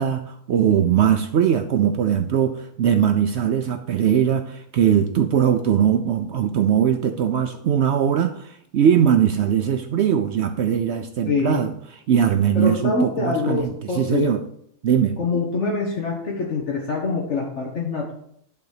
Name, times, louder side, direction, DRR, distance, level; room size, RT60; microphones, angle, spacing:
voice 1, 0.0-11.7 12.1-14.4 14.8-15.2, right 9 dB, 65° right, 8 dB, 0.7 m, -20 dB
voice 2, 11.3-11.6 12.5-14.3 15.2-18.1, left 4 dB, 55° left, -1 dB, 1.5 m, -24 dB
10.5 x 4.0 x 6.5 m, 0.70 s
omnidirectional pair, 1.4 m